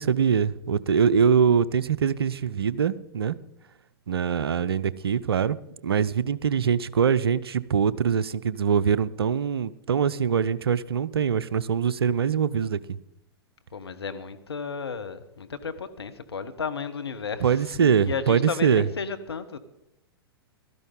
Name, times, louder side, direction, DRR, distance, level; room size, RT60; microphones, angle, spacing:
voice 1, 0.0-3.4 4.1-5.6 5.8-13.0 17.4-18.9, right 7 dB, 70° right, 0.6 m, -23 dB
voice 2, 13.7-17.5 17.8-19.6, left 5 dB, 75° left, 1.1 m, -33 dB
15.5 x 13.0 x 3.8 m
figure-of-eight pair, 105°, 13 cm